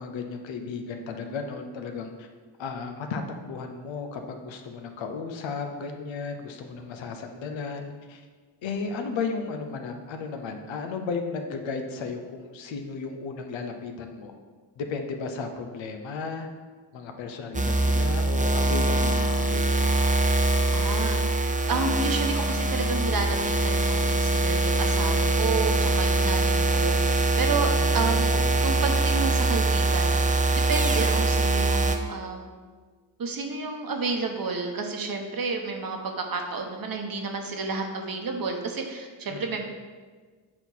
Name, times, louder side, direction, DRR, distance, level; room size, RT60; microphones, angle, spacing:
voice 1, 0.0-2.3 2.6-8.2 8.6-14.3 14.8-16.5 16.9-19.9 27.7-28.8 39.3-39.6, left 4 dB, 85° left, 5 dB, 0.9 m, -34 dB
sound 1, 17.5-32.0, right 2 dB, 15° right, 0.7 m, -23 dB
voice 2, 20.7-21.2 21.7-28.3 28.6-30.2 30.5-32.5 33.2-39.6, right 4 dB, 50° right, 3 dB, 1.1 m, -31 dB
7.8 x 4.4 x 4.1 m, 1.5 s
cardioid pair, 65°, 44 cm